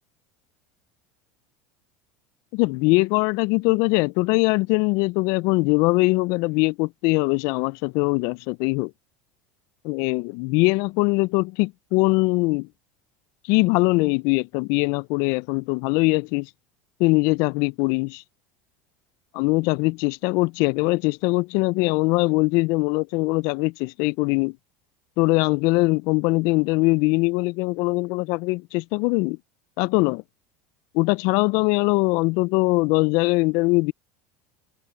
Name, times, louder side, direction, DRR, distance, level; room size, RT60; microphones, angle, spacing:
voice 1, 2.5-8.9 9.8-12.7 13.5-16.5 17.0-18.2 19.3-24.6 25.2-29.4 29.8-30.2 30.9-33.9, left 26 dB, 65° left, 0.4 m, -22 dB
supercardioid pair, 120°, 6 cm